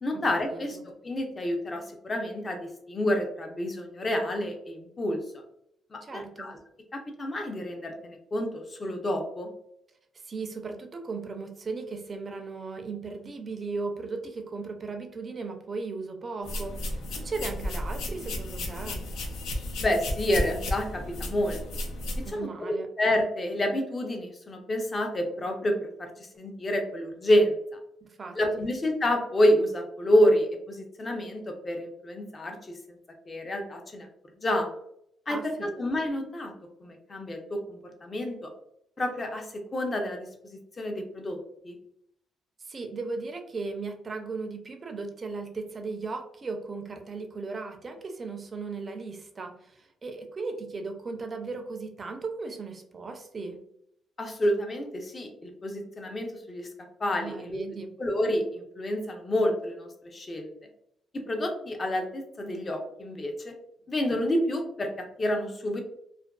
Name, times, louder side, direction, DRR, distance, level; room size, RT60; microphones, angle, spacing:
voice 1, 0.0-0.8 1.0-5.2 5.9-6.6 6.9-9.5 19.8-21.6 22.3-27.6 28.4-33.0 33.3-34.1 34.4-34.7 35.3-36.5 36.8-38.5 39.0-41.4 41.6-41.8 54.2-56.7 57.0-57.6 58.0-60.5 61.3-63.5 63.9-65.8, left 1 dB, 30° left, 3 dB, 0.6 m, -28 dB
voice 2, 0.5-0.9 6.0-6.5 10.2-19.0 22.2-22.9 28.0-28.7 35.3-35.7 42.6-53.6 57.2-57.9, right 4 dB, 35° right, 4 dB, 0.5 m, -37 dB
sound 1, 16.4-22.3, left 1 dB, 80° left, 0.5 m, -33 dB
2.5 x 2.2 x 2.2 m, 0.74 s
cardioid pair, 90°, 0 cm